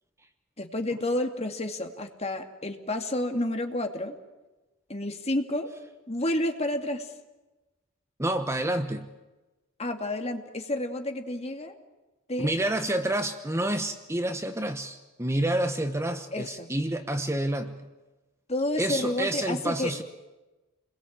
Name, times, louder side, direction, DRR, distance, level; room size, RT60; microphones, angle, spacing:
voice 1, 0.6-4.2 4.9-5.7 6.1-7.1 9.8-11.7 12.3-12.6 16.3-16.7 18.5-20.0, left 1 dB, 30° left, 5 dB, 2.5 m, -30 dB
voice 2, 8.2-9.1 12.4-17.8 18.8-20.0, right 1 dB, 15° right, 8 dB, 1.1 m, -28 dB
29.0 x 21.5 x 8.8 m, 1.1 s
head